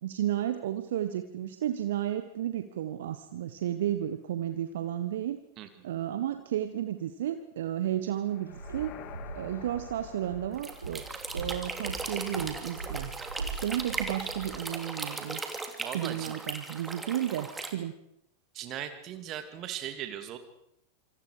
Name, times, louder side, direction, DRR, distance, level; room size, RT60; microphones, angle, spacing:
voice 1, 0.0-5.4 5.8-8.9 9.3-11.0 11.3-13.1 13.6-15.4 15.9-17.9, right 11 dB, 60° right, 9 dB, 1.3 m, -32 dB
sound 1, 8.3-12.4, left 11 dB, 40° left, 2.1 m, -50 dB
Walk footsteps, 8.5-14.6, right 3 dB, 75° right, 4.1 m, -41 dB
sound 2, 10.5-17.7, right 3 dB, 10° right, 3.2 m, -38 dB
voice 2, 15.8-16.3 18.5-20.4, right 10 dB, 35° right, 8 dB, 2.7 m, -38 dB
27.0 x 26.5 x 5.0 m, 0.76 s
figure-of-eight pair, 90°, 0 cm